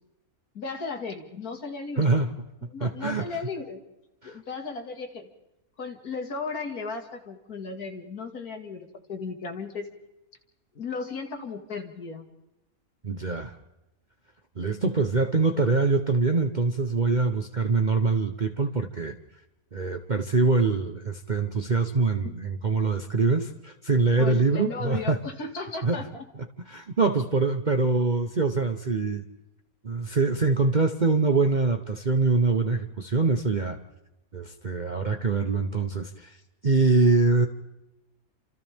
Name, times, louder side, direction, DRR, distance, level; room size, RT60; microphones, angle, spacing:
voice 1, 0.5-2.1 2.7-3.8 4.2-5.3 5.8-9.9 10.8-12.3 22.2-22.4 24.2-26.3, left 4 dB, 90° left, 4 dB, 2.6 m, -35 dB
voice 2, 2.0-2.3 2.8-3.3 4.2-4.3 13.0-13.5 14.6-19.2 19.7-25.2 25.8-26.0 26.7-29.2 29.8-33.8 34.3-36.3 36.6-37.5, right 3 dB, 35° right, 6 dB, 0.9 m, -24 dB
29.5 x 27.0 x 3.6 m, 0.93 s
omnidirectional pair, 1.5 m